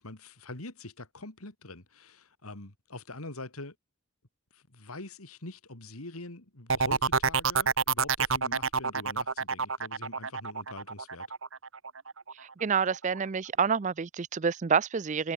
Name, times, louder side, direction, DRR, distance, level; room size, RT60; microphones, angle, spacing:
voice 1, 0.0-3.7 4.5-11.3, left 2 dB, 85° left, 3.1 m, -44 dB
sound 1, 6.7-12.3 12.7-13.2, right 5 dB, 65° right, 1.9 m, -28 dB
voice 2, 12.6-15.3, right 6 dB, 35° right, 0.4 m, -28 dB
head